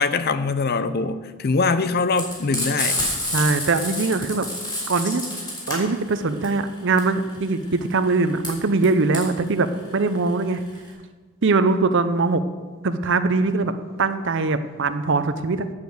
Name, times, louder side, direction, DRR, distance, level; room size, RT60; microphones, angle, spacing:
voice 1, 0.0-3.0, left 4 dB, 50° left, 12 dB, 0.6 m, -23 dB
Frying (food), 2.1-10.9, left 1 dB, 20° left, 3.8 m, -28 dB
voice 2, 3.3-4.5 4.9-5.2 5.7-9.7 9.9-10.6 11.4-12.4 12.8-13.7 14.0-15.7, right 3 dB, 60° right, 11 dB, 0.7 m, -21 dB
9.3 x 6.8 x 8.0 m, 1.4 s
head